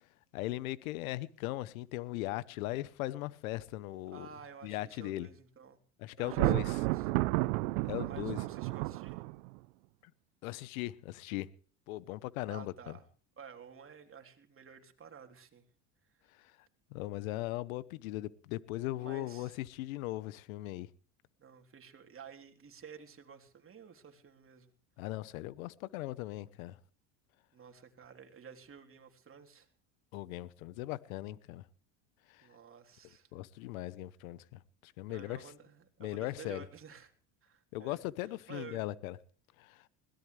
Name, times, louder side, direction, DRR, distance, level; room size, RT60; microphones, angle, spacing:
voice 1, 0.3-4.3 4.6-5.3 6.0-6.8 7.8-8.4 10.4-11.5 11.9-13.0 16.4-16.5 16.9-20.9 25.0-26.8 30.1-31.6 32.3-32.5 33.3-35.4 36.0-36.6 37.7-39.2 39.6-39.9, left 17 dB, 85° left, 1.0 m, -39 dB
voice 2, 4.1-5.8 6.2-7.1 8.0-9.2 12.5-13.1 13.4-15.6 19.0-19.6 21.4-24.7 27.5-29.7 32.4-33.3 35.1-37.1 37.4-38.0 38.5-38.8, right 7 dB, 30° right, 3.4 m, -52 dB
Thunder, 6.2-9.6, right 21 dB, 85° right, 0.8 m, -31 dB
21.5 x 17.0 x 3.3 m
supercardioid pair, 95°, 40 cm